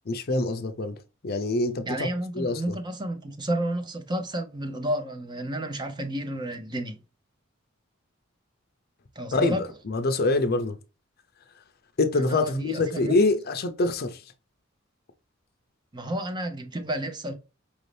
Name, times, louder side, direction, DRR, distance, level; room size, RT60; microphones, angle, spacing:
voice 1, 0.1-1.0 1.2-2.1 2.3-2.8 9.3-10.8 12.0-14.2, left 2 dB, 50° left, 0.6 m, -25 dB
voice 2, 1.9-7.0 9.2-9.6 12.2-13.1 15.9-17.3, right 1 dB, 20° right, 0.6 m, -31 dB
4.9 x 2.6 x 3.3 m
head